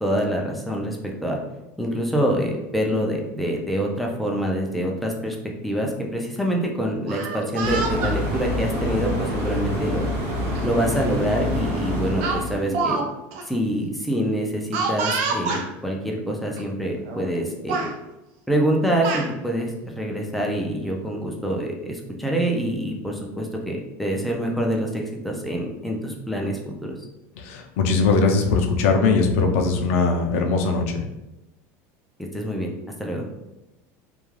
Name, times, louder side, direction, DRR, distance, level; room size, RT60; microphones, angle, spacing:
voice 1, 0.0-1.4 1.8-5.4 5.6-10.0 10.6-13.0 13.5-17.9 18.5-26.9 32.2-32.7 33.0-33.2, equal, ahead, -1 dB, 0.3 m, -26 dB
Speech, 7.0-8.2 9.1-9.3 10.5-10.6 11.0-11.2 12.2-13.1 13.3-13.4 14.7-15.6 16.6-16.7 17.0-17.4 17.7-17.9 18.7-19.3, right 4 dB, 65° right, 0.5 m, -27 dB
sound 1, 7.6-12.8, equal, 90° right, 0.9 m, -27 dB
voice 2, 27.4-31.0, left 4 dB, 75° left, 3 dB, 0.5 m, -20 dB
2.3 x 2.2 x 3.1 m, 0.98 s
cardioid pair, 170°, 7 cm